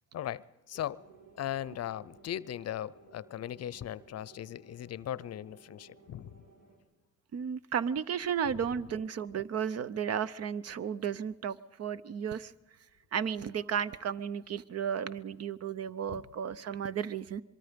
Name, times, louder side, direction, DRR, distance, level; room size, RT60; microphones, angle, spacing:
voice 1, 0.1-1.0 1.4-6.4 8.4-9.0 16.1-16.2, left 11 dB, 55° left, 21 dB, 0.6 m, -39 dB
sound 1, 0.7-6.8, right 4 dB, 75° right, 5.5 m, -58 dB
voice 2, 7.3-12.5 13.1-17.4, right 8 dB, 55° right, 17 dB, 0.7 m, -34 dB
24.5 x 23.0 x 5.2 m, 1.1 s
cardioid pair, 90°, 30 cm